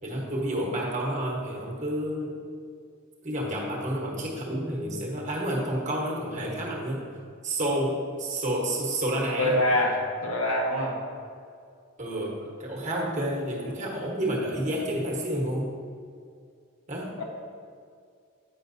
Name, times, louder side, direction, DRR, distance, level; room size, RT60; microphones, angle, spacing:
voice 1, 0.0-2.4 3.2-7.0 7.4-9.6 12.0-15.7 16.9-17.2, right 1 dB, 35° right, -2 dB, 1.2 m, -30 dB
voice 2, 9.4-11.0 17.2-17.3, left 1 dB, 90° left, 0 dB, 1.2 m, -25 dB
8.4 x 5.9 x 2.7 m, 2.2 s
head